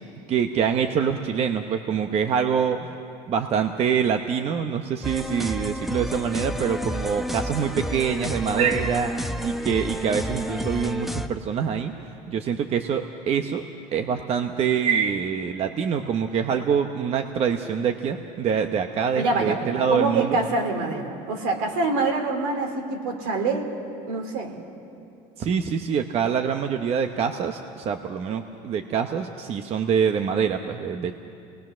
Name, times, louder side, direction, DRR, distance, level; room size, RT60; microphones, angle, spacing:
voice 1, 0.3-2.9 3.3-9.1 9.4-11.9 12.3-13.6 13.9-20.4 25.4-31.2, right 7 dB, 40° right, 6 dB, 0.9 m, -25 dB
sound 1, 5.0-11.3, equal, ahead, 0.8 m, -30 dB
voice 2, 19.1-23.7 24.1-24.6, right 3 dB, 75° right, 3 dB, 3.1 m, -25 dB
27.0 x 20.0 x 6.2 m, 2.5 s
supercardioid pair, 120°, 16 cm